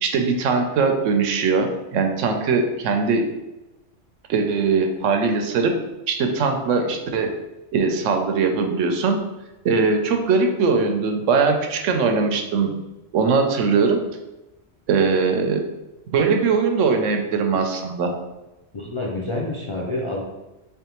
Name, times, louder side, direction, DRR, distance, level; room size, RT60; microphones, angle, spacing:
voice 1, 0.0-3.3 4.3-5.7 6.1-7.3 7.7-9.2 9.6-12.7 13.1-14.0 14.9-15.6 16.1-18.1, right 4 dB, 90° right, 4 dB, 0.9 m, -20 dB
voice 2, 18.7-20.2, left 2 dB, 55° left, -4 dB, 0.3 m, -28 dB
3.6 x 3.4 x 2.9 m, 1.0 s
omnidirectional pair, 1.2 m